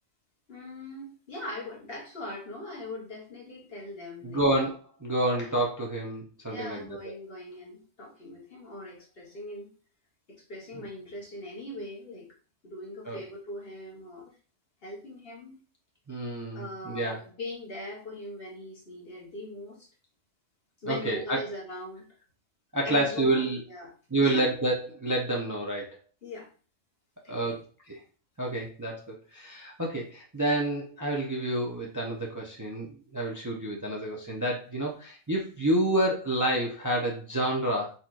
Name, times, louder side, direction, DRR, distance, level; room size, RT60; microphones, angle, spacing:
voice 1, 0.5-4.5 6.5-9.7 10.3-12.4 12.6-14.3 14.8-15.6 16.5-19.9 20.8-22.1 22.8-23.9 24.2-24.5 26.2-26.5 27.2-27.6, left 1 dB, 50° left, -1 dB, 1.5 m, -41 dB
voice 2, 4.2-4.7 5.0-7.0 13.1-13.2 16.1-17.2 20.8-21.4 22.7-23.6 24.1-26.0 27.3-27.6 28.4-37.9, right 1 dB, 20° right, -2 dB, 0.7 m, -28 dB
4.4 x 4.2 x 2.5 m, 0.37 s
omnidirectional pair, 1.3 m